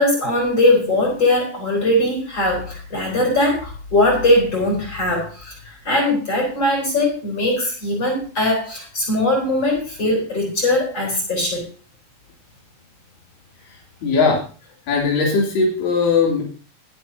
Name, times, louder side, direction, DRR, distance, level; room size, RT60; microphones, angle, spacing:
voice 1, 0.0-11.6, left 1 dB, 30° left, 0 dB, 4.8 m, -20 dB
voice 2, 14.0-14.4 14.9-16.4, left 4 dB, 70° left, -2 dB, 4.7 m, -18 dB
20.5 x 8.0 x 2.8 m, 0.36 s
omnidirectional pair, 4.1 m